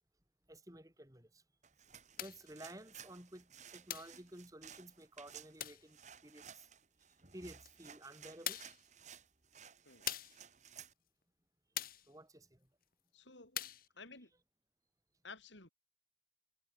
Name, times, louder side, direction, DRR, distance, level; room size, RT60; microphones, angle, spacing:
voice 1, 0.5-1.4 2.2-6.7 7.3-8.6 12.1-12.7, right 1 dB, 20° right, 2.9 m, -53 dB
sound 1, 1.6-10.9, right 8 dB, 40° right, 2.5 m, -57 dB
sound 2, 2.2-2.5 3.9-4.2 5.6-5.9 7.6-7.7 8.4-8.8 10.1-10.4 11.7-12.1 13.5-13.9, left 12 dB, 50° left, 2.3 m, -42 dB
voice 2, 13.1-13.7 13.9-14.3 15.2-15.7, left 4 dB, 70° left, 7.8 m, -54 dB
head